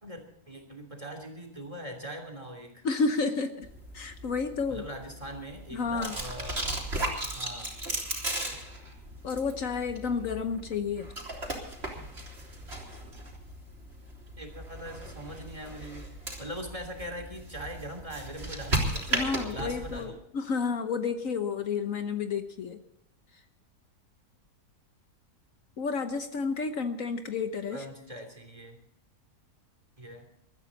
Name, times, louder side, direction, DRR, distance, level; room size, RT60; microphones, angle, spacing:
voice 1, 0.0-2.9 4.7-6.7 7.3-7.7 14.4-16.0 16.4-20.2 27.7-28.8 30.0-30.3, equal, 20° right, 3 dB, 3.1 m, -41 dB
voice 2, 2.8-3.7 3.9-4.8 5.7-6.2 9.2-11.1 19.1-22.8 25.8-27.8, left 5 dB, 65° left, 8 dB, 1.3 m, -31 dB
sound 1, 3.6-20.1, right 1 dB, 40° right, 3.9 m, -36 dB
22.0 x 13.5 x 4.1 m, 0.77 s
omnidirectional pair, 1.6 m